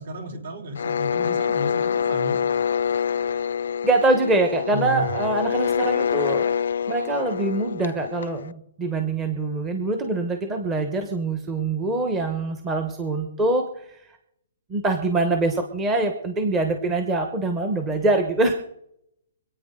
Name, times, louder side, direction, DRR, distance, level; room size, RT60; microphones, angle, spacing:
voice 1, 0.0-2.6 4.7-5.1, right 1 dB, 55° right, 3 dB, 3.6 m, -33 dB
sound 1, 0.8-8.5, left 7 dB, 70° left, 0.5 m, -26 dB
voice 2, 3.8-6.6 6.9-14.0 14.7-18.5, right 2 dB, 10° right, 5 dB, 1.0 m, -24 dB
26.5 x 9.0 x 3.8 m, 0.76 s
hypercardioid pair, 170°, 0 cm